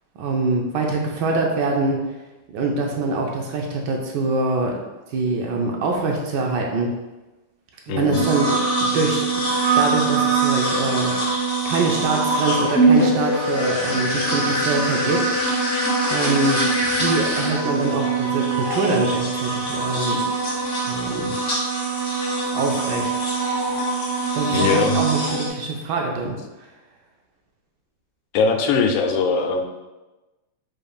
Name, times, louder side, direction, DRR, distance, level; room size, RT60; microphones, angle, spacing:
voice 1, 0.2-2.0 2.5-4.8 5.1-6.9 7.9-9.5 9.7-15.3 16.1-16.7 17.0-20.2 20.8-21.3 22.5-23.1 24.3-26.4, right 3 dB, 75° right, 1 dB, 1.0 m, -24 dB
voice 2, 7.9-8.2 24.5-25.0 28.3-29.6, left 4 dB, 90° left, 5 dB, 1.5 m, -20 dB
sound 1, 8.1-25.5, right 3 dB, 45° left, 1.2 m, -22 dB
5.0 x 4.4 x 2.3 m, 1.1 s
omnidirectional pair, 2.4 m